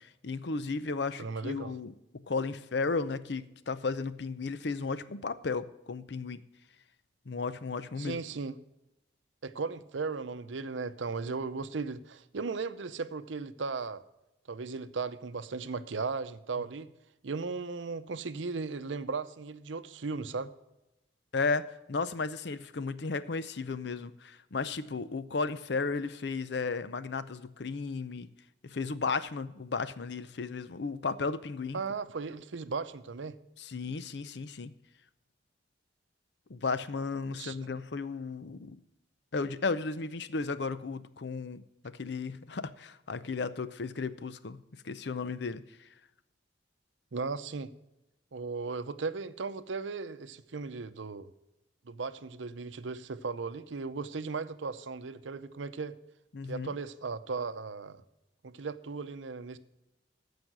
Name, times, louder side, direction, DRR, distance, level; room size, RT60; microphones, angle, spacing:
voice 1, 0.0-6.4 7.3-8.2 11.2-11.3 21.3-28.3 28.6-31.8 33.6-34.7 36.5-38.8 39.3-44.6 44.8-45.9 56.3-56.7, left 4 dB, 60° left, 14 dB, 0.6 m, -34 dB
voice 2, 1.2-1.7 8.0-8.5 9.4-14.0 14.5-16.9 17.2-20.5 31.7-33.4 37.4-37.6 47.1-47.7 48.3-51.3 51.9-56.0 56.5-58.0 58.4-59.6, right 4 dB, 80° right, 12 dB, 0.7 m, -36 dB
14.5 x 5.1 x 6.0 m, 0.92 s
head